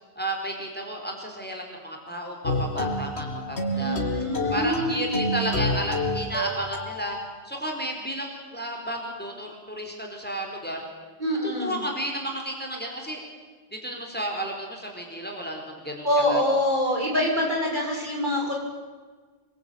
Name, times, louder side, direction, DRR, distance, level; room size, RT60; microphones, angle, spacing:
voice 1, 0.2-4.2 4.5-7.2 7.4-10.8 11.4-13.2 13.8-16.4, equal, 10° left, 1 dB, 4.5 m, -32 dB
sound 1, 2.4-7.3, left 1 dB, 85° left, 2.7 m, -29 dB
voice 2, 3.7-5.1 11.2-11.8 16.0-18.5, left 1 dB, 50° right, -1 dB, 7.6 m, -25 dB
27.0 x 22.5 x 9.4 m, 1.4 s
omnidirectional pair, 1.1 m